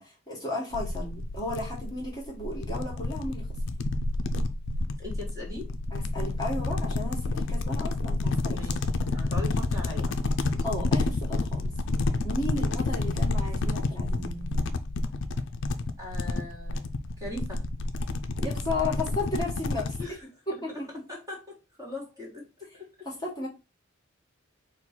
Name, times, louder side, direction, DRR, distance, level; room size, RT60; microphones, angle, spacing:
voice 1, 0.0-3.5 5.9-8.6 10.6-11.7 12.2-14.5 18.4-19.9 20.5-20.9 23.0-23.5, left 2 dB, 20° left, -4 dB, 1.2 m, -34 dB
sound 1, 0.7-20.1, left 2 dB, 60° left, 0.4 m, -29 dB
voice 2, 5.0-5.7 8.5-10.2 10.4-10.6 12.6-12.7 16.0-16.8 17.2-17.7 20.0-20.3 20.7-20.8 21.1-22.5 22.7-22.8, left 2 dB, 15° right, -2 dB, 1.5 m, -40 dB
4.4 x 2.3 x 4.2 m, 0.28 s
head